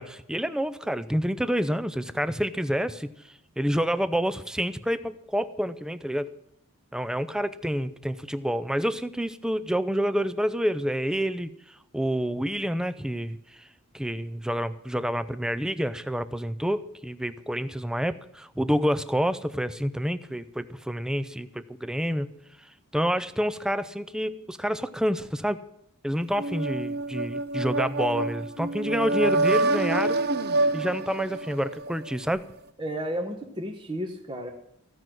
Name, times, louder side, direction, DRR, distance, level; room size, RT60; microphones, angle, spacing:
voice 1, 0.0-3.1 3.6-6.3 6.9-11.5 11.9-13.4 13.9-22.3 22.9-25.6 26.0-30.2 30.7-32.4, equal, 5° right, 13 dB, 0.5 m, -28 dB
sound 1, 26.4-32.2, right 2 dB, 45° right, 0.7 m, -27 dB
voice 2, 32.8-34.5, equal, 20° right, 1 dB, 1.0 m, -32 dB
15.5 x 6.2 x 9.1 m, 0.75 s
head